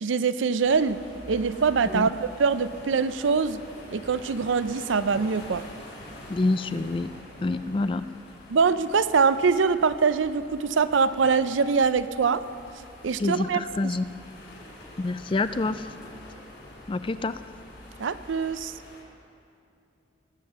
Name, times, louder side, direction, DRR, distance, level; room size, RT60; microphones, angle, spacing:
voice 1, 0.0-1.0 1.3-2.1 2.4-3.6 3.9-5.6 8.5-12.4 13.0-13.6 18.0-18.7, right 5 dB, 80° right, 13 dB, 0.5 m, -23 dB
sound 1, 0.6-19.0, left 1 dB, 65° left, 4.3 m, -46 dB
sound 2, 0.9-3.7, equal, 15° right, 1.0 m, -49 dB
voice 2, 6.3-7.1 7.4-8.1 13.2-14.0 15.0-15.9 16.9-17.4, left 2 dB, 25° left, 13 dB, 0.3 m, -27 dB
21.0 x 7.4 x 6.7 m, 2.6 s
head